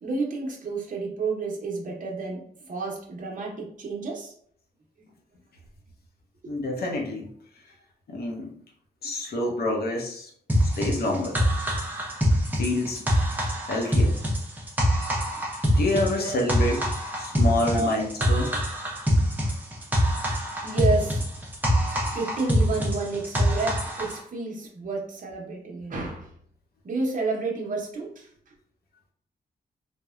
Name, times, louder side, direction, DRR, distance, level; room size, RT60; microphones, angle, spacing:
voice 1, 0.0-4.3 5.0-5.1 6.4-6.5 16.2-16.4 17.7-17.9 19.2-19.6 20.6-21.2 21.6-26.3 26.8-28.5, right 3 dB, 50° right, -1 dB, 0.8 m, -31 dB
voice 2, 6.5-7.3 8.1-8.5 9.0-10.3 10.6-11.4 12.6-13.0 13.7-14.2 15.8-16.8 17.2-18.6, left 1 dB, 65° left, 1 dB, 0.7 m, -27 dB
sound 1, 10.5-24.2, equal, 10° right, 0.6 m, -24 dB
3.3 x 2.1 x 2.3 m, 0.63 s
wide cardioid pair, 110°, 17 cm